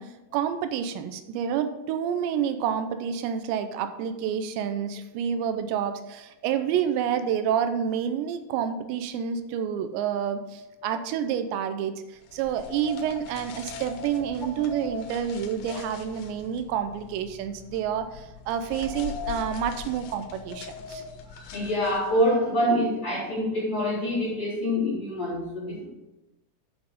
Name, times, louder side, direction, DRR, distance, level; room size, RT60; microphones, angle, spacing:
voice 1, 0.0-21.0, right 8 dB, 85° right, 9 dB, 2.8 m, -29 dB
sound 1, 12.3-22.3, left 5 dB, 90° left, 3.2 m, -40 dB
voice 2, 21.2-25.9, equal, 25° left, -8 dB, 4.0 m, -26 dB
8.7 x 5.8 x 5.1 m, 0.98 s
omnidirectional pair, 5.1 m